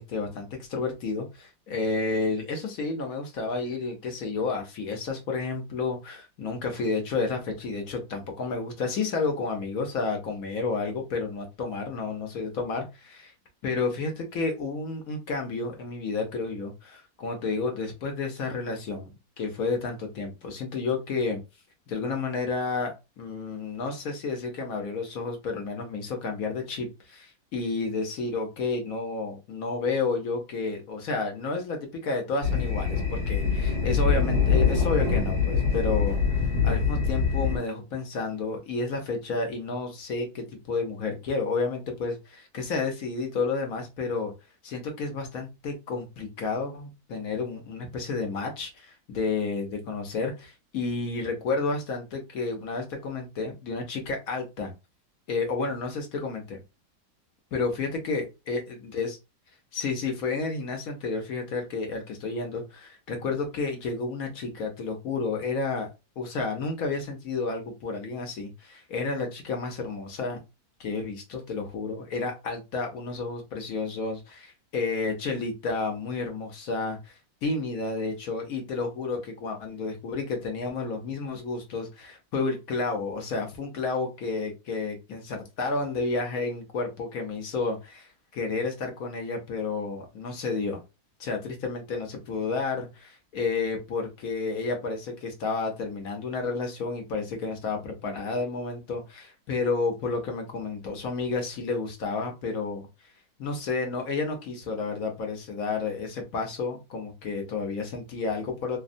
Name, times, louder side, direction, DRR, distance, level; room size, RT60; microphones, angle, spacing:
voice 1, 0.0-13.3 13.6-21.4 21.9-36.2 36.6-44.3 44.6-54.7 55.3-56.6 57.5-59.2 59.7-65.9 66.2-70.4 70.8-90.8 91.2-102.9 103.4-108.8, left 4 dB, 65° left, 3 dB, 1.0 m, -31 dB
sound 1, 32.4-37.6, left 5 dB, 70° right, 1.7 m, -24 dB
3.4 x 2.1 x 2.5 m, 0.26 s
omnidirectional pair, 1.8 m